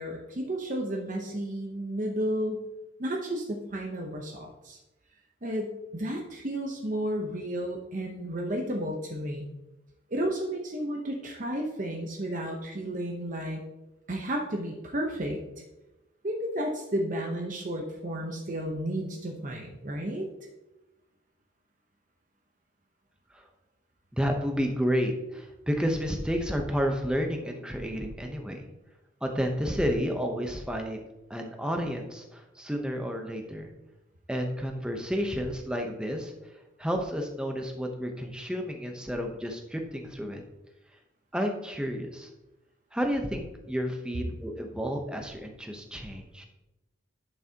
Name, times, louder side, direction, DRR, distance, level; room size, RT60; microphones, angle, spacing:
voice 1, 0.0-2.6 3.0-4.8 5.4-9.5 10.1-13.6 14.1-15.4 16.2-20.3, right 1 dB, 40° right, 1 dB, 0.8 m, -32 dB
voice 2, 24.1-28.6 29.2-31.0 31.3-33.7 34.3-36.5 36.8-40.4 41.3-42.3 42.9-46.5, equal, 5° right, 3 dB, 0.8 m, -31 dB
11.0 x 6.2 x 2.9 m, 0.98 s
head